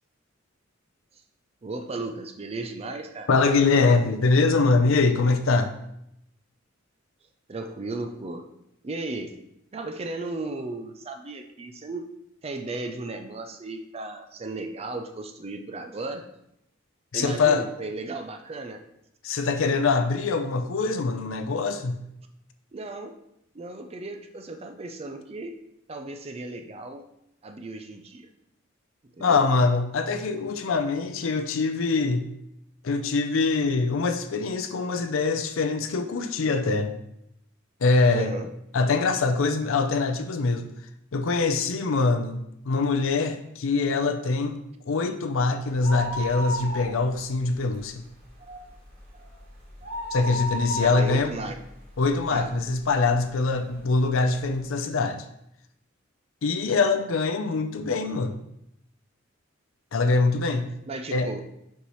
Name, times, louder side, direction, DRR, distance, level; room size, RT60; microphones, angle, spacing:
voice 1, 1.6-3.3 7.5-8.5 8.8-9.4 9.7-12.1 12.4-16.3 17.1-18.8 22.7-23.1 23.5-25.6 25.9-27.0 27.4-28.3 29.2-29.4 38.1-38.5 50.8-51.6 52.3-52.5 60.9-61.4, right 2 dB, 30° right, 6 dB, 0.4 m, -35 dB
voice 2, 3.3-5.7 17.1-17.6 19.2-22.0 29.2-32.3 32.8-36.9 37.8-38.3 38.7-40.7 41.1-44.6 44.9-48.0 50.1-51.3 52.0-55.2 56.4-58.4 59.9-60.7 61.1-61.3, left 3 dB, 75° left, 7 dB, 0.5 m, -23 dB
sound 1, 45.8-47.4 47.7-47.8 48.2-52.6 53.2-53.3 54.0-54.1 54.4-54.5, left 1 dB, 50° right, 2.6 m, -33 dB
7.0 x 5.5 x 3.0 m, 0.79 s
head